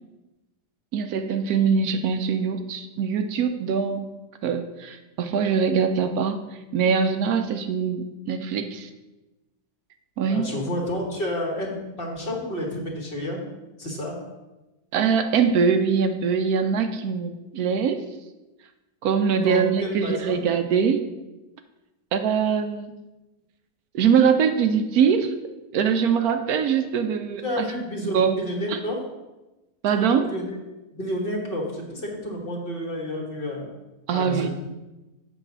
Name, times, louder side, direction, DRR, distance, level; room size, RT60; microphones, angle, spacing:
voice 1, 0.9-4.1 4.4-6.4 6.7-8.9 10.2-10.5 14.9-18.0 19.0-21.0 22.1-22.9 23.9-25.3 25.7-27.6 28.1-28.4 28.7-28.8 29.8-30.3 34.1-34.5, right 6 dB, 75° right, 8 dB, 1.0 m, -22 dB
voice 2, 10.3-13.4 13.8-14.1 19.4-20.4 27.4-29.0 30.0-30.6 30.9-33.7 34.1-34.5, left 1 dB, 35° left, 0 dB, 1.5 m, -30 dB
7.8 x 4.1 x 6.0 m, 1.1 s
omnidirectional pair, 1.7 m